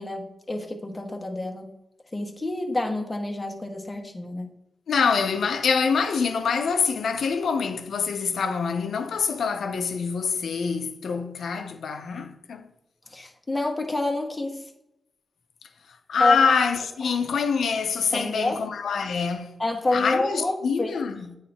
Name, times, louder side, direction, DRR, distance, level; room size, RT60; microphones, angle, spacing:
voice 1, 0.0-1.7 2.1-4.5 13.1-14.6 16.2-16.4 18.1-18.6 19.6-20.9, left 2 dB, 25° left, 1.2 m, -28 dB
voice 2, 4.9-12.7 15.9-19.6 19.9-21.4, left 5 dB, 80° left, 0.7 m, -25 dB
8.4 x 3.2 x 4.3 m
cardioid pair, 65°, 0 cm